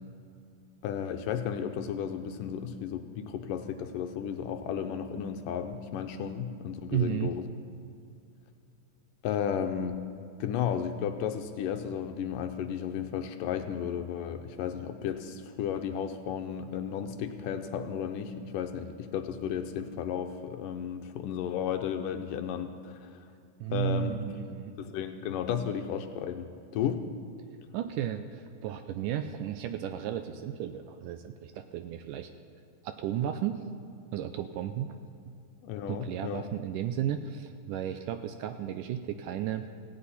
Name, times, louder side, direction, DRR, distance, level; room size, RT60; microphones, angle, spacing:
voice 1, 0.8-7.4 9.2-10.0 10.4-23.3 23.7-24.2 24.8-27.1 35.6-36.4, left 8 dB, 80° left, 7 dB, 2.2 m, -33 dB
voice 2, 6.9-7.4 23.6-24.8 27.7-32.3 32.8-33.6 34.1-35.0 35.9-39.7, right 10 dB, 80° right, 9 dB, 2.0 m, -33 dB
17.5 x 16.0 x 4.2 m, 2.4 s
omnidirectional pair, 4.1 m